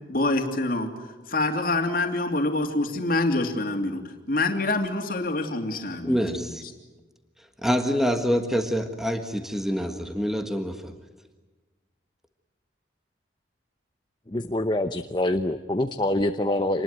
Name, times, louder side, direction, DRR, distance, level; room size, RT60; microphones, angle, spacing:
voice 1, 0.1-0.9 1.3-6.5, left 2 dB, 50° left, 4 dB, 3.0 m, -26 dB
voice 2, 6.0-6.6 7.6-10.9, equal, ahead, 6 dB, 1.5 m, -26 dB
voice 3, 14.3-16.8, left 1 dB, 25° left, 7 dB, 0.8 m, -25 dB
27.0 x 20.5 x 9.2 m, 1.2 s
head